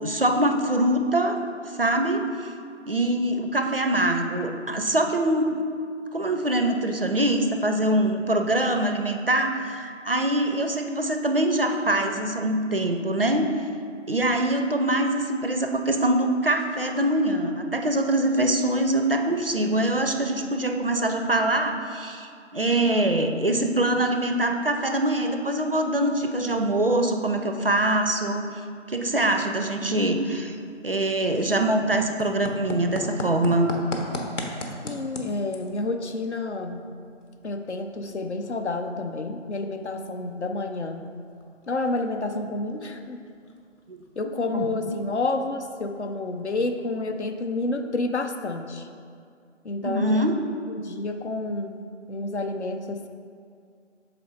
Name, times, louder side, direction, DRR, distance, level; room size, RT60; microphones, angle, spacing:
voice 1, 0.0-1.4 1.7-2.3 2.9-5.6 6.1-13.5 14.1-28.5 28.9-30.5 30.8-33.8 43.9-44.0 44.5-44.7 49.8-50.4, right 1 dB, 50° right, 5 dB, 0.4 m, -24 dB
sound 1, 30.0-48.1, left 1 dB, 80° left, 1.0 m, -41 dB
voice 2, 34.8-36.8 37.4-41.1 41.7-43.2 44.2-48.9 49.6-50.3 50.7-53.1, left 2 dB, 65° left, 6 dB, 0.6 m, -29 dB
6.7 x 4.3 x 3.9 m, 2.2 s
figure-of-eight pair, 170°, 37 cm